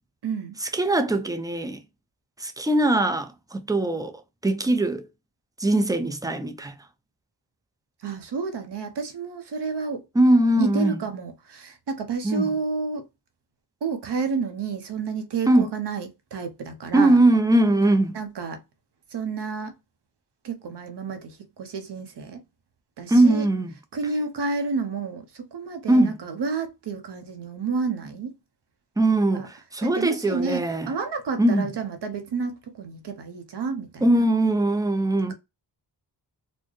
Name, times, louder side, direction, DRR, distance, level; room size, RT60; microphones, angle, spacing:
voice 1, 0.2-0.6 8.0-10.1 10.6-13.1 13.8-17.2 18.1-18.6 19.1-19.7 20.4-22.4 23.0-23.5 23.9-28.3 29.3-29.5 29.8-34.3, right 4 dB, 75° right, 0.8 m, -30 dB
voice 2, 0.7-1.8 2.4-4.1 4.4-5.1 5.6-6.7 10.2-11.0 12.2-12.5 15.5-15.7 16.9-18.2 23.1-23.7 25.9-26.1 29.0-30.9 31.4-31.7 34.0-35.3, right 1 dB, 10° right, 0.5 m, -21 dB
4.2 x 2.1 x 3.1 m
wide cardioid pair, 85°, 42 cm